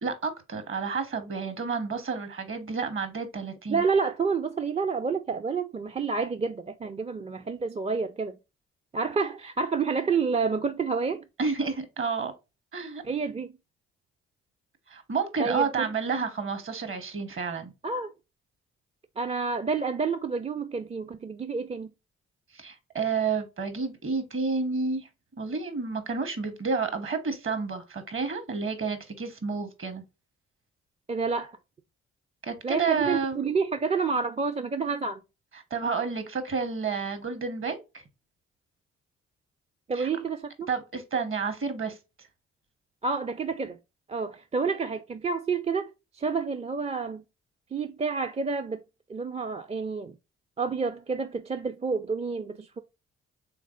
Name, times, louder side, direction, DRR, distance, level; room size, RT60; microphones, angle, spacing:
voice 1, 0.0-3.8 11.4-12.3 12.7-13.0 14.9-17.7 22.5-25.1 25.4-30.0 32.4-33.4 35.7-38.0 40.0-40.1 40.7-42.0, right 5 dB, 45° right, 1.2 m, -30 dB
voice 2, 3.7-8.4 8.9-11.2 13.0-13.5 15.4-15.9 17.8-18.1 19.2-21.9 31.1-31.6 32.6-35.2 39.9-40.7 43.0-43.8 44.1-47.2 47.7-48.8 49.1-50.1 50.6-52.8, right 5 dB, 20° right, 0.4 m, -29 dB
3.5 x 3.2 x 2.4 m
hypercardioid pair, 45°, 30 cm